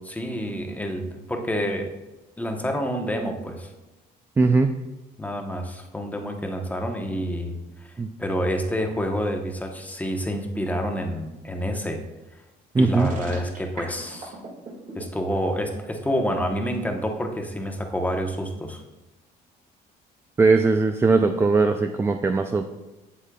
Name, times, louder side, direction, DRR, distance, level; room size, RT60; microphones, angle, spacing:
voice 1, 0.0-1.9 2.4-3.7 5.2-7.9 8.2-12.0 12.8-14.3 15.0-18.8, equal, 10° left, 3 dB, 0.9 m, -28 dB
voice 2, 4.4-4.7 8.0-8.1 12.7-13.1 20.4-22.6, right 3 dB, 15° right, 6 dB, 0.3 m, -19 dB
sound 1, 12.9-15.0, right 3 dB, 50° right, 1.9 m, -38 dB
8.2 x 7.3 x 2.3 m, 1.0 s
cardioid pair, 110°, 17 cm